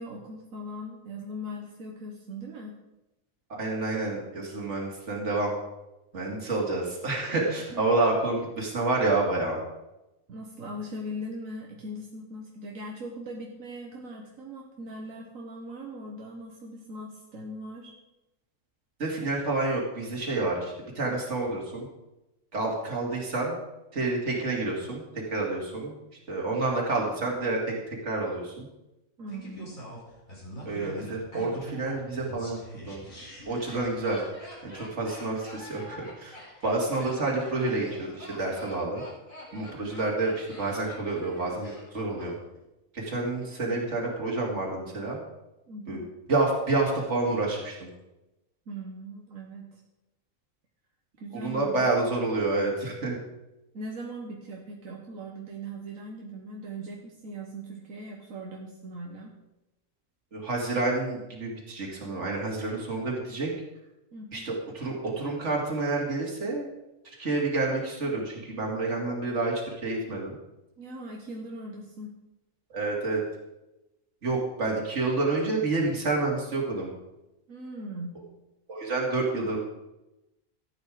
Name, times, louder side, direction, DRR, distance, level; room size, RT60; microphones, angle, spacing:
voice 1, 0.0-2.8 7.7-7.8 10.3-17.9 29.2-29.7 45.7-46.1 48.7-49.8 51.2-51.9 53.7-59.3 64.1-64.5 70.8-72.2 77.5-78.1, equal, 85° right, 0 dB, 1.7 m, -40 dB
voice 2, 3.5-5.5 6.1-9.6 19.0-21.9 22.5-23.6 23.9-25.0 25.3-25.9 26.3-27.6 28.0-28.7 30.7-32.6 32.9-33.0 33.5-34.2 34.6-36.4 36.6-39.0 39.5-42.4 42.9-45.2 45.9-46.0 46.3-47.9 51.4-53.2 60.3-63.5 64.3-66.7 67.2-70.4 72.7-73.2 74.2-76.9 78.7-79.6, right 2 dB, 60° right, -2 dB, 2.7 m, -28 dB
Laughter, 29.3-42.3 42.6-42.7, equal, 85° left, 4.2 m, -44 dB
13.5 x 8.8 x 5.0 m, 0.97 s
omnidirectional pair, 1.4 m